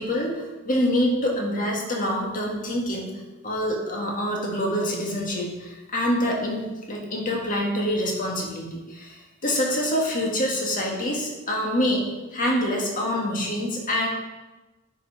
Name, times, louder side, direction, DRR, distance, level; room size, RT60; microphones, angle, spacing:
voice 1, 0.0-3.1 3.4-12.0 12.3-14.1, equal, 40° left, -1 dB, 1.8 m, -26 dB
9.8 x 5.3 x 4.9 m, 1.1 s
head